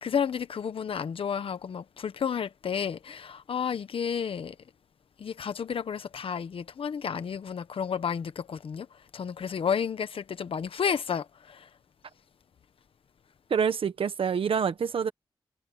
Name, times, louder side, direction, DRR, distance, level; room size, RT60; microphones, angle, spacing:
voice 1, 0.0-4.6 5.2-11.7, left 7 dB, 85° left, 1.1 m, -31 dB
voice 2, 13.5-15.1, right 6 dB, 90° right, 1.4 m, -26 dB
wide cardioid pair, 170°, 9 cm